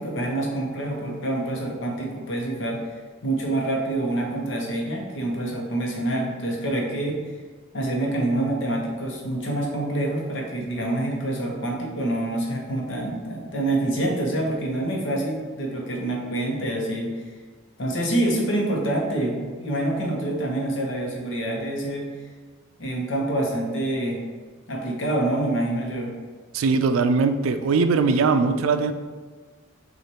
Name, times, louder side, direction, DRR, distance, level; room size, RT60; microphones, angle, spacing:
voice 1, 0.0-2.8 3.2-7.2 7.7-17.1 17.8-22.1 22.8-24.2 24.7-26.1, right 1 dB, 65° left, -1 dB, 0.9 m, -26 dB
voice 2, 26.5-28.9, right 4 dB, 85° right, 8 dB, 0.3 m, -20 dB
6.1 x 2.5 x 2.9 m, 1.5 s
head